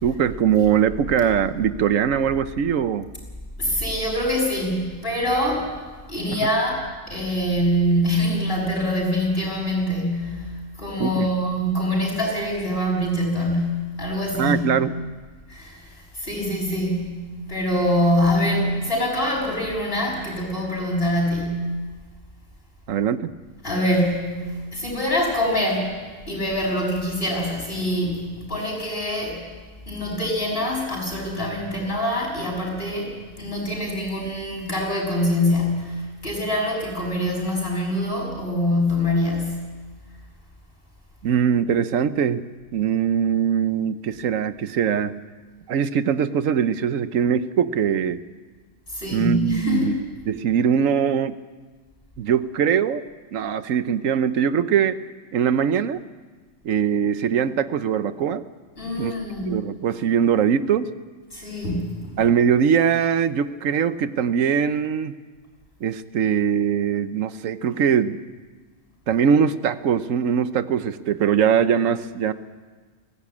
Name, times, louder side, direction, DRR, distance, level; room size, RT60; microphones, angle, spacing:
voice 1, 0.0-3.1 6.3-6.4 11.0-11.3 14.4-14.9 22.9-23.3 41.2-42.4 42.7-45.1 45.7-48.2 49.1-50.0 50.3-51.3 52.2-53.0 53.3-55.0 55.3-56.0 56.6-58.4 59.0-59.1 59.5-60.9 62.2-65.1 65.8-68.2 69.1-72.3, right 8 dB, 90° right, 13 dB, 1.2 m, -21 dB
voice 2, 3.6-5.7 6.1-14.7 15.5-15.9 16.1-21.7 23.6-25.9 26.3-29.4 29.9-39.6 48.9-50.0 58.8-59.5 61.3-62.2, left 1 dB, 45° left, -1 dB, 6.5 m, -24 dB
21.0 x 17.0 x 8.6 m, 1.4 s
omnidirectional pair, 1.3 m